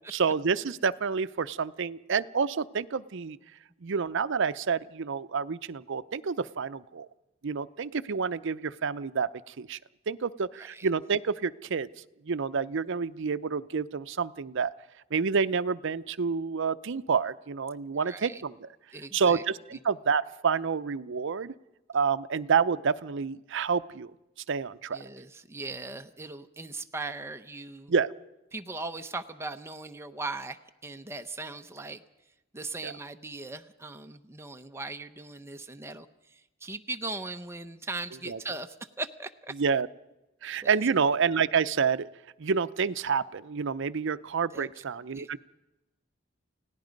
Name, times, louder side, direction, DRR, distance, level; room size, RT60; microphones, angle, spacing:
voice 1, 0.1-3.4 3.8-7.1 7.4-9.8 10.1-11.9 12.3-14.7 15.1-18.7 19.1-21.5 21.9-24.1 24.5-25.0 27.9-28.1 32.8-32.9 38.3-38.4 39.5-39.9 40.4-42.1 42.4-45.4, right 5 dB, 65° right, 13 dB, 0.6 m, -28 dB
voice 2, 18.1-18.4 18.9-19.4 24.9-27.9 28.5-32.0 32.5-39.5 40.6-40.8 44.5-44.7 45.1-45.3, right 3 dB, 15° right, 6 dB, 0.8 m, -39 dB
29.5 x 17.5 x 5.2 m, 0.98 s
head